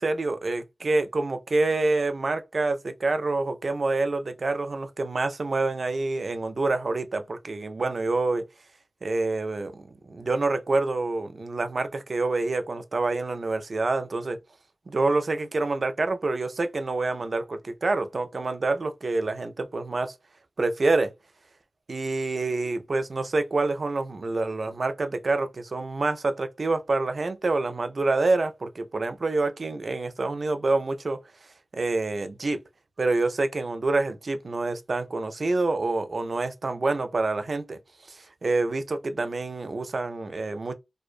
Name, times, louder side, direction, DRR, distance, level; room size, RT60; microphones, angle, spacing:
voice 1, 0.0-8.4 9.0-14.4 14.9-20.1 20.6-21.1 21.9-31.2 31.7-32.6 33.0-37.8 38.1-40.7, right 3 dB, 60° right, 0.3 m, -27 dB
2.4 x 2.1 x 2.4 m
cardioid pair, 55°, 0 cm